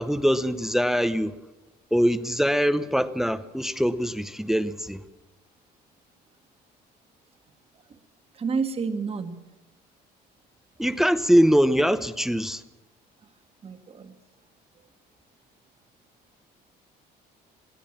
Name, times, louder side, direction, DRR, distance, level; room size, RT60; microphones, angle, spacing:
voice 1, 0.0-1.4 1.9-5.0 10.8-12.6, equal, ahead, 0.8 m, -23 dB
voice 2, 8.3-9.4 13.6-14.1, right 5 dB, 35° right, 1.8 m, -29 dB
22.5 x 16.0 x 7.3 m
cardioid pair, 110°, 17 cm